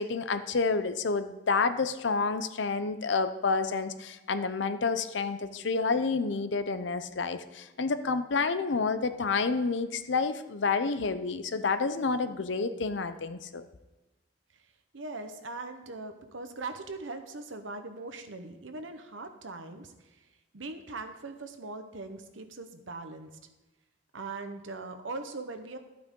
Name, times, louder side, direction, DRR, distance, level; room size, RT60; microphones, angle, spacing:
voice 1, 0.0-13.7, left 4 dB, 70° left, 11 dB, 0.7 m, -29 dB
voice 2, 14.9-20.2 20.5-23.3 24.1-25.8, right 3 dB, 90° right, 8 dB, 1.0 m, -40 dB
12.5 x 8.6 x 3.8 m, 1.1 s
head